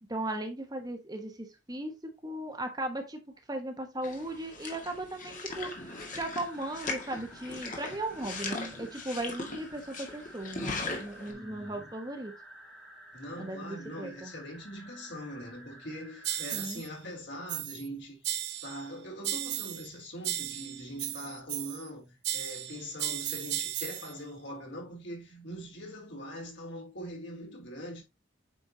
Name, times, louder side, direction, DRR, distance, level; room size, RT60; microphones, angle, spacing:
voice 1, 0.1-1.9 2.2-3.2 3.5-12.3 13.4-14.3 16.5-16.8, right 1 dB, 20° right, 1.2 m, -37 dB
sound 1, 4.0-11.3, left 3 dB, 40° left, 1.9 m, -39 dB
sound 2, 5.7-16.7, equal, ahead, 4.0 m, -52 dB
voice 2, 11.2-11.9 13.1-18.3 18.6-28.0, equal, 65° left, 3.5 m, -42 dB
sound 3, 16.2-16.9 17.5-17.9 18.2-18.9 19.2-19.9 20.2-21.9 22.2-24.1, right 12 dB, 60° right, 0.7 m, -35 dB
8.6 x 5.5 x 2.8 m
head